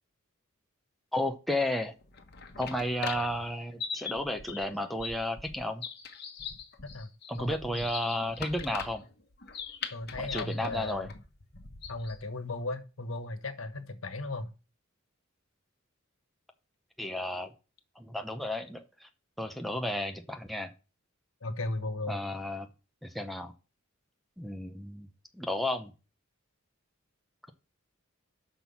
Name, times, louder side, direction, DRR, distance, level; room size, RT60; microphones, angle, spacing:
voice 1, 1.1-2.0 2.6-5.8 7.3-9.0 10.2-11.1 17.0-17.5 18.0-19.1 19.4-20.7 22.1-22.7 23.0-23.5 24.4-25.1 25.3-25.9, left 1 dB, ahead, 0.7 m, -33 dB
sound 1, 2.0-12.2, left 6 dB, 50° left, 1.3 m, -41 dB
voice 2, 7.4-7.9 9.9-11.1 11.9-14.5 21.4-22.2, left 2 dB, 80° left, 1.4 m, -36 dB
6.1 x 6.0 x 7.2 m
head